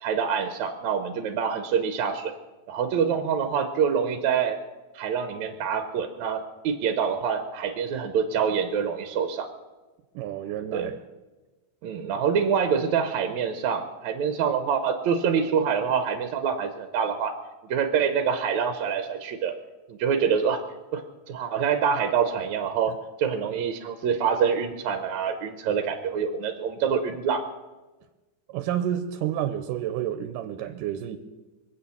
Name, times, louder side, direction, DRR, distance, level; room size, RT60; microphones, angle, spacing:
voice 1, 0.0-2.3 2.7-4.6 4.9-9.5 10.7-10.9 11.8-17.3 17.7-19.5 19.9-20.6 20.9-21.0 21.3-22.9 23.2-27.4, right 7 dB, 70° right, 8 dB, 2.0 m, -26 dB
voice 2, 10.2-11.0 28.5-31.2, right 10 dB, 85° right, 9 dB, 2.4 m, -30 dB
24.0 x 8.5 x 7.1 m, 1.2 s
omnidirectional pair, 3.8 m